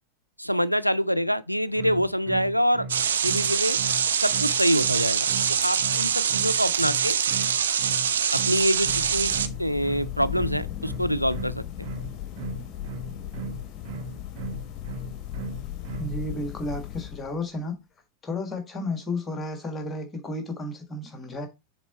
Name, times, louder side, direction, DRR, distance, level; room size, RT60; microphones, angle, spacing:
voice 1, 0.4-2.9 3.2-3.8 4.2-5.3 5.6-7.2 8.3-11.9, equal, 90° left, 0.4 m, -25 dB
sound 1, 1.7-16.2, right 4 dB, 45° right, 1.0 m, -37 dB
sound 2, 2.9-9.5, right 8 dB, 65° right, 0.5 m, -24 dB
sound 3, 8.4-17.6, left 12 dB, 35° left, 1.3 m, -37 dB
voice 2, 16.0-17.8 18.2-21.5, left 2 dB, 15° left, 1.6 m, -32 dB
7.1 x 3.7 x 4.2 m
figure-of-eight pair, 90°, 0 cm